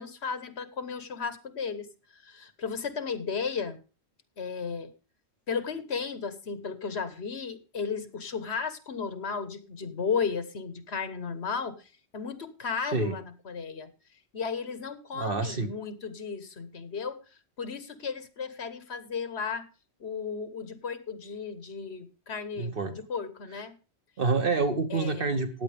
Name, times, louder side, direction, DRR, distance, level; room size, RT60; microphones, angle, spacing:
voice 1, 0.0-1.9 2.3-3.8 4.4-4.9 5.5-11.8 12.1-13.9 14.3-17.2 17.6-19.7 20.0-23.7 24.9-25.3, left 5 dB, 70° left, 11 dB, 1.5 m, -34 dB
voice 2, 12.8-13.2 15.1-15.7 22.6-22.9 24.2-25.6, right 4 dB, 55° right, 8 dB, 1.2 m, -28 dB
15.0 x 9.4 x 3.5 m, 0.33 s
omnidirectional pair, 1.1 m